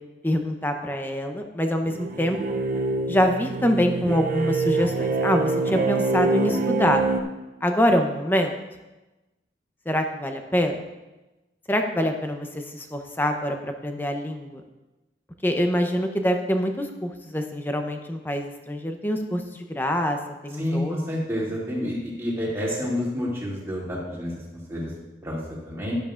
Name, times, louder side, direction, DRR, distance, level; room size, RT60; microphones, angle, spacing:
voice 1, 0.2-2.4 3.1-7.0 7.6-8.5 9.9-10.8 11.7-12.5 12.7-14.6 15.4-20.2 20.4-20.9, equal, 10° left, 5 dB, 0.7 m, -25 dB
sound 1, 1.9-7.2, right 3 dB, 50° right, 0.6 m, -25 dB
voice 2, 20.6-24.4 24.7-24.9 25.2-25.9, equal, 15° right, -6 dB, 2.4 m, -29 dB
11.5 x 10.5 x 2.5 m, 1.1 s
head